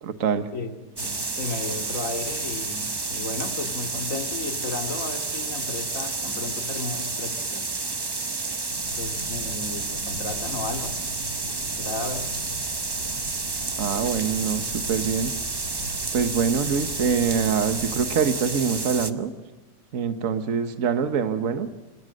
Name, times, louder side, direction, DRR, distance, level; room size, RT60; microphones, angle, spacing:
voice 1, 0.0-0.5 13.8-15.3 16.1-19.3 19.9-21.7, right 6 dB, 55° right, 9 dB, 1.6 m, -24 dB
voice 2, 0.5-7.7 8.9-11.0 11.6-12.3, left 3 dB, 50° left, 5 dB, 2.7 m, -34 dB
sound 1, 1.0-19.1, right 3 dB, 30° right, 0.4 m, -30 dB
sound 2, 8.7-18.0, left 1 dB, 80° left, 6.3 m, -41 dB
26.0 x 19.5 x 6.4 m, 1.2 s
omnidirectional pair, 1.8 m